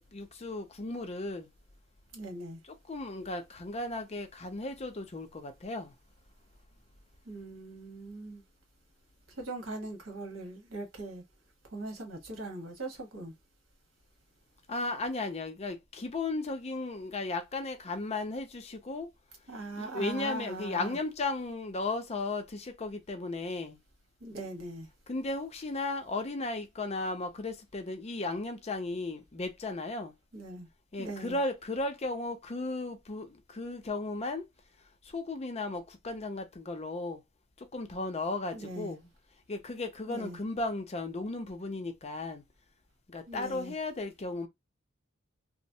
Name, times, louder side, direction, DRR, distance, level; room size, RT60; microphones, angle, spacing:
voice 1, 0.0-1.5 2.9-5.9 14.7-19.1 19.8-23.8 25.1-30.1 30.9-34.4 35.1-37.2 37.7-39.1 39.5-42.4 43.1-44.5, left 2 dB, 30° left, 0.5 m, -35 dB
voice 2, 2.1-2.6 7.2-8.4 9.4-11.2 11.7-13.3 19.5-21.0 24.2-24.9 30.3-30.7 31.0-31.4 38.5-38.9 40.1-40.4 43.3-43.7, right 2 dB, 80° right, 1.2 m, -40 dB
3.1 x 2.0 x 2.7 m
head